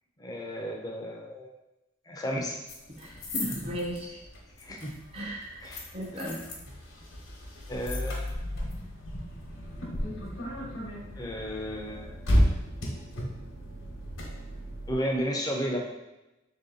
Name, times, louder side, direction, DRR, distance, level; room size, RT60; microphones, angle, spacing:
voice 1, 0.2-1.5 2.1-2.6 4.6-4.9 5.6-5.9 7.7-8.3 11.2-12.2 14.9-15.8, equal, 20° left, 0 dB, 0.5 m, -33 dB
sound 1, 2.7-14.9, equal, 70° left, 0.9 m, -33 dB
voice 2, 3.0-4.2 5.1-5.6 5.9-6.4, equal, 30° right, -3 dB, 0.6 m, -35 dB
3.5 x 2.7 x 3.8 m, 0.98 s
head